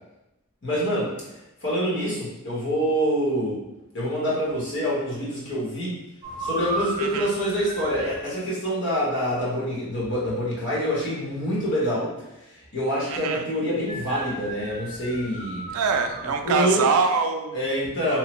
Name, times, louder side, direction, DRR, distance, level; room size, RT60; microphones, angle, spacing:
voice 1, 0.6-1.1 1.6-3.6 3.9-5.9 6.4-12.1 12.7-15.6 16.4-16.9 17.5-18.2, equal, 55° left, -7 dB, 1.0 m, -26 dB
sound 1, 6.2-8.2 13.9-16.6, right 2 dB, 25° right, 0.7 m, -35 dB
voice 2, 7.0-7.3 13.1-13.5 15.7-17.7, right 5 dB, 75° right, 6 dB, 0.3 m, -24 dB
3.1 x 2.0 x 3.0 m, 0.95 s
head